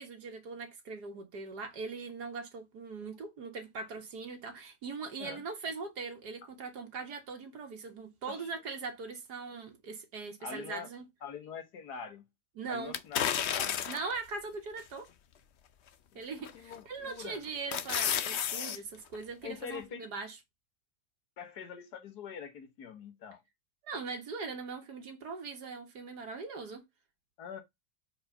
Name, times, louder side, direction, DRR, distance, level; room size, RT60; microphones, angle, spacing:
voice 1, 0.0-11.0 12.6-12.9 13.9-15.1 16.2-20.4 23.8-26.8, right 4 dB, 80° right, 2.1 m, -41 dB
voice 2, 10.4-10.9 11.2-12.3 12.7-13.9 16.1-16.3 16.5-17.4 19.4-20.1 21.4-23.4 27.4-27.6, left 7 dB, 75° left, 1.7 m, -44 dB
sound 1, 12.9-14.2 14.8-14.9 16.5-16.8 17.2-18.8 19.1-19.2, left 9 dB, 60° left, 0.7 m, -32 dB
4.9 x 4.5 x 5.5 m
omnidirectional pair, 1.7 m